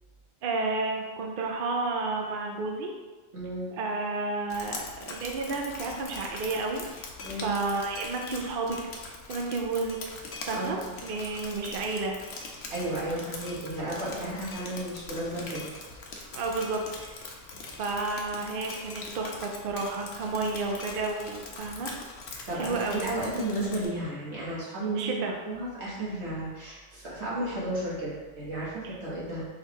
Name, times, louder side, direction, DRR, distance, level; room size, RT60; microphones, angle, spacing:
voice 1, 0.4-2.9 3.7-8.8 9.1-10.0 10.5-12.2 16.3-17.3 17.8-21.9 22.5-23.1 25.0-25.3 28.8-29.0, right 3 dB, 60° right, 1 dB, 0.7 m, -31 dB
voice 2, 3.3-3.7 7.2-7.5 10.5-10.9 12.7-15.7 22.3-29.4, right 1 dB, 85° right, -7 dB, 1.7 m, -33 dB
Drip, 4.5-23.9, left 3 dB, 75° left, 0.9 m, -42 dB
4.6 x 2.3 x 4.6 m, 1.3 s
omnidirectional pair, 1.1 m